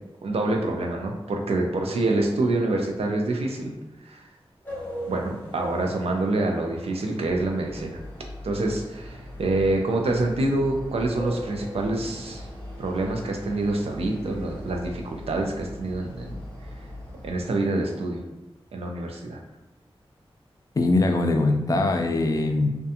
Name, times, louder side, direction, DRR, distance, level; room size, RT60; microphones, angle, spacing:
voice 1, 0.2-3.7 4.0-4.3 5.1-8.0 8.4-12.5 12.8-16.4 17.2-18.2 18.7-19.4, right 2 dB, 90° right, 1 dB, 0.4 m, -26 dB
sound 1, 4.6-18.1, equal, 15° left, 0.8 m, -43 dB
sound 2, 7.2-17.3, left 1 dB, 30° right, 0.5 m, -41 dB
voice 2, 20.8-22.7, left 2 dB, 35° left, 4 dB, 0.3 m, -22 dB
2.5 x 2.2 x 2.7 m, 1.0 s
wide cardioid pair, 80°, 10 cm